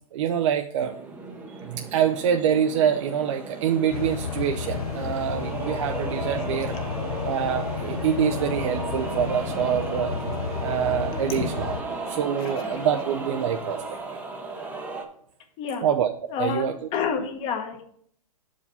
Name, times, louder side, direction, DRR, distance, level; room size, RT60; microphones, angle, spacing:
voice 1, 0.1-1.0 1.5-6.7 7.3-10.1 10.6-11.8 12.1-13.8 15.8-16.1 16.4-16.7, right 8 dB, 55° right, 5 dB, 0.5 m, -25 dB
sound 1, 0.8-15.0, right 3 dB, 10° right, 0.7 m, -35 dB
sound 2, 3.9-11.8, left 7 dB, 85° left, 0.7 m, -32 dB
Investigation Piano, 4.4-14.0, right 6 dB, 30° right, 1.2 m, -47 dB
voice 2, 6.4-6.8 11.3-11.5 12.4-12.8 15.6-15.9 16.3-16.6 16.9-17.8, left 6 dB, 30° left, 5 dB, 1.1 m, -30 dB
6.9 x 4.9 x 5.4 m, 0.62 s
hypercardioid pair, 150°, 19 cm